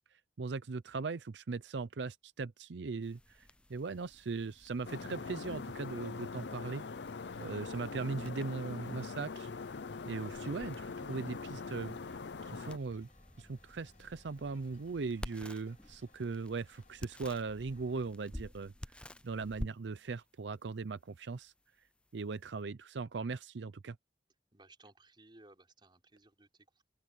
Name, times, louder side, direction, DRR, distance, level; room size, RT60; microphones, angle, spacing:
voice 1, 0.4-6.8 7.4-9.5 10.1-12.1 12.4-13.1 13.4-21.5 22.1-24.0, right 4 dB, 80° right, 0.6 m, -39 dB
sound 1, 3.0-22.6, left 1 dB, 5° left, 0.5 m, -52 dB
sound 2, 4.8-12.8, left 4 dB, 75° left, 0.6 m, -43 dB
sound 3, 7.2-18.0, left 3 dB, 50° left, 3.7 m, -67 dB
voice 2, 24.5-26.9, right 2 dB, 30° right, 3.9 m, -60 dB
open air
head